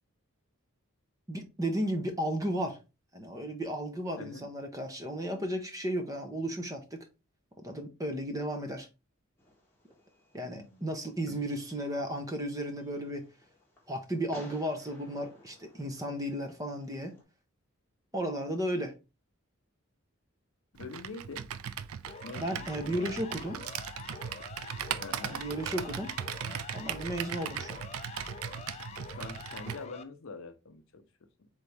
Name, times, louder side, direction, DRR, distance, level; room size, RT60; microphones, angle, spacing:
voice 1, 1.3-2.8 3.1-7.1 7.6-8.9 10.3-13.2 13.9-17.1 18.1-18.9 22.4-23.6 25.2-26.1 26.7-27.8, right 1 dB, 15° right, 0.7 m, -34 dB
voice 2, 4.2-4.5 10.5-10.8 11.3-11.4 20.8-21.5 22.2-23.1 25.0-25.4 26.4-26.7 29.1-31.5, left 3 dB, 65° left, 0.6 m, -45 dB
Fireworks, 9.4-17.2, left 1 dB, 10° left, 1.1 m, -57 dB
Computer keyboard, 20.8-29.8, right 9 dB, 75° right, 0.4 m, -38 dB
Siren, 22.1-30.0, left 5 dB, 30° left, 0.3 m, -46 dB
4.0 x 3.5 x 3.3 m
head